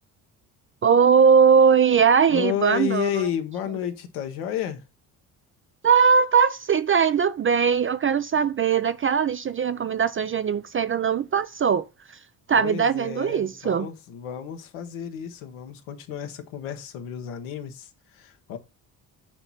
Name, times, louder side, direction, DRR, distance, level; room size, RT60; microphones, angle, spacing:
voice 1, 0.8-3.1 5.8-11.8 12.5-13.9, right 6 dB, 30° right, 0.3 m, -20 dB
voice 2, 2.3-4.8 12.5-18.6, left 9 dB, 80° left, 1.2 m, -31 dB
6.7 x 3.0 x 5.5 m
hypercardioid pair, 50°, 50 cm